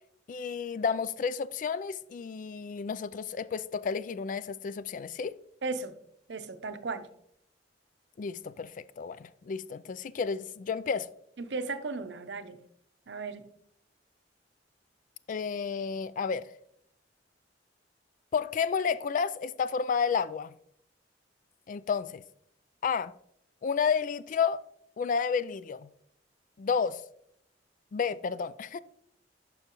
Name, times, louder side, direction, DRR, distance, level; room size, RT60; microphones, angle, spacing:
voice 1, 0.3-5.4 8.2-8.7 9.0-11.1 15.3-16.5 18.3-20.5 21.7-22.2 22.8-23.1 23.6-24.6 25.0-25.9 26.6-27.0 27.9-28.8, left 6 dB, 45° left, 0.3 m, -31 dB
voice 2, 5.6-6.0 6.3-7.1 11.4-12.6 13.1-13.4, right 3 dB, 70° right, 0.6 m, -35 dB
11.5 x 5.5 x 3.0 m
head